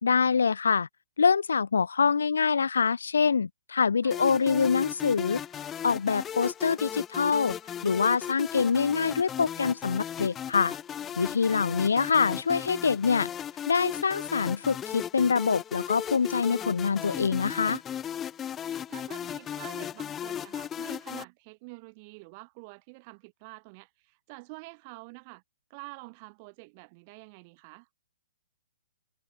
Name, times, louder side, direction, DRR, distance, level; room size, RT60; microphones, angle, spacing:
voice 1, 0.0-0.9 1.2-5.4 5.8-7.6 7.8-10.8 11.2-13.3 13.7-17.8, left 5 dB, 85° left, 0.3 m, -25 dB
sound 1, 4.1-21.2, left 9 dB, 15° left, 0.4 m, -36 dB
voice 2, 11.0-11.6 18.9-25.4 25.7-27.9, right 30 dB, 35° right, 1.7 m, -47 dB
hypercardioid pair, 150°, 0 cm